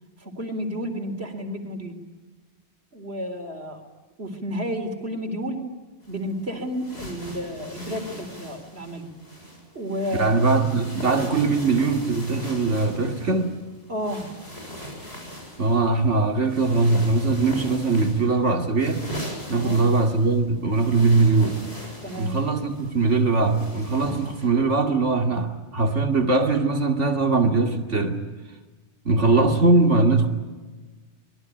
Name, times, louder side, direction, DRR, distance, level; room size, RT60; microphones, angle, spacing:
voice 1, 0.2-2.0 2.9-3.8 4.2-5.6 6.1-9.1 9.7-10.4 13.9-14.3 19.5-19.8 22.0-22.4, equal, 60° right, 4.2 m, -31 dB
sound 1, 6.0-24.5, equal, 60° left, 7.8 m, -40 dB
voice 2, 10.2-13.6 15.6-19.0 19.5-21.6 22.2-28.3 29.0-30.3, right 3 dB, 85° right, 2.8 m, -21 dB
25.0 x 22.5 x 10.0 m
omnidirectional pair, 1.2 m